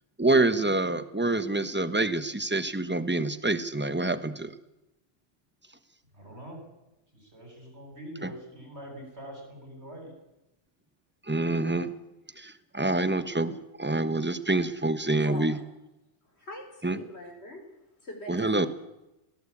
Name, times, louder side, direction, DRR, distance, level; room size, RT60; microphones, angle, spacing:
voice 1, 0.2-4.5 8.2-8.3 11.2-11.9 12.4-15.6 16.8-17.0 18.3-18.7, right 2 dB, 10° right, 1.2 m, -26 dB
voice 2, 6.1-6.6 7.1-10.1, right 1 dB, 60° right, 8.0 m, -44 dB
voice 3, 15.1-15.6 16.3-17.6 18.0-18.7, left 1 dB, 60° left, 5.5 m, -43 dB
23.5 x 18.5 x 8.6 m
omnidirectional pair, 1.2 m